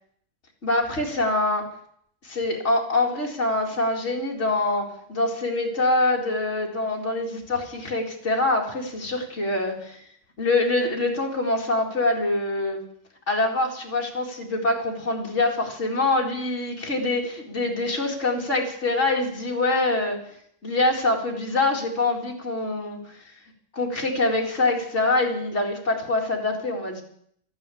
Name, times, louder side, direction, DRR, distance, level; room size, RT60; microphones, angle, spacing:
voice 1, 0.6-1.7 2.2-10.0 10.4-12.8 13.3-20.2 20.6-23.2 23.7-27.0, left 2 dB, 65° left, -1 dB, 2.7 m, -25 dB
13.5 x 9.6 x 8.4 m, 0.67 s
omnidirectional pair, 1.3 m